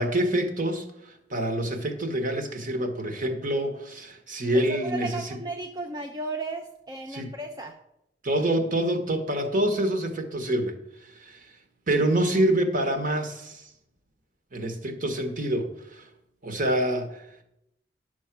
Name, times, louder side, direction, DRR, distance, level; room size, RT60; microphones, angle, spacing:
voice 1, 0.0-5.2 7.1-7.3 8.2-11.5 11.9-13.7 14.5-16.1 16.4-17.3, right 1 dB, 45° right, 6 dB, 1.4 m, -27 dB
voice 2, 4.7-7.8, right 2 dB, 20° right, 3 dB, 0.6 m, -34 dB
10.5 x 6.4 x 6.0 m, 0.84 s
head